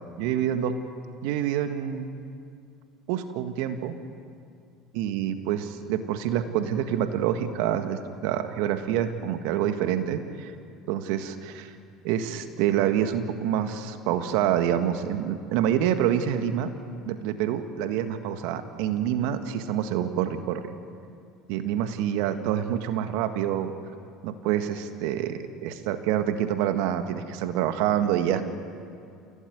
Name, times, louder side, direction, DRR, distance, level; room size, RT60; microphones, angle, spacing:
voice 1, 0.2-0.8 1.2-2.1 3.1-3.9 4.9-10.5 10.9-11.7 12.0-16.7 17.0-20.7 21.5-23.7 24.2-28.5, right 10 dB, 70° right, 8 dB, 1.7 m, -27 dB
28.0 x 16.5 x 9.4 m, 2.4 s
hypercardioid pair, 75°, 0 cm